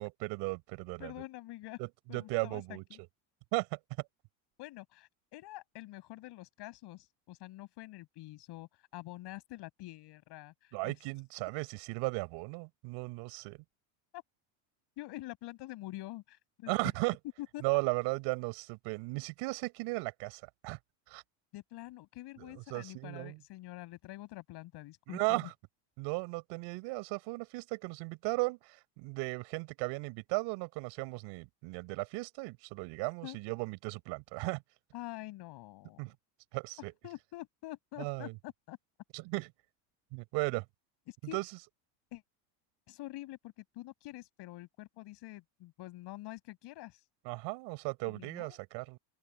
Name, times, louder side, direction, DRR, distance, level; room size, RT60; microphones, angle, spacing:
voice 1, 0.0-1.1 1.8-1.9 2.1-2.8 3.5-3.8 10.7-13.6 16.7-17.2 17.6-20.8 21.1-21.2 22.4-23.4 25.1-25.5 26.0-34.6 36.0-36.1 36.5-36.9 38.0-38.3 39.1-39.5 40.1-40.6 41.3-41.4 47.2-49.0, right 27 dB, 70° right, 4.9 m, -36 dB
voice 2, 1.0-1.8 2.1-3.0 4.6-10.9 14.1-14.2 15.0-16.7 17.4-17.6 21.5-25.5 33.2-33.4 34.9-36.0 37.0-38.8 41.1-41.4 42.1-42.2 42.9-47.0 48.0-48.6, left 17 dB, 60° left, 6.5 m, -46 dB
open air
cardioid pair, 130°, 46 cm